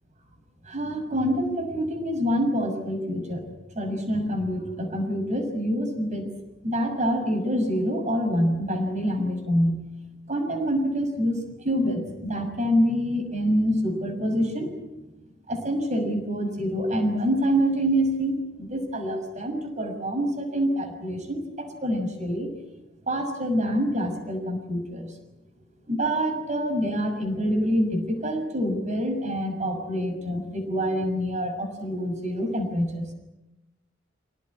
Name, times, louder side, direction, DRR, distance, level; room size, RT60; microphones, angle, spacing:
voice 1, 0.7-3.4 3.7-6.3 6.6-9.8 10.3-14.8 15.5-22.5 23.1-25.1 25.9-33.1, equal, 40° right, 6 dB, 6.3 m, -26 dB
27.5 x 18.0 x 9.9 m, 1.0 s
head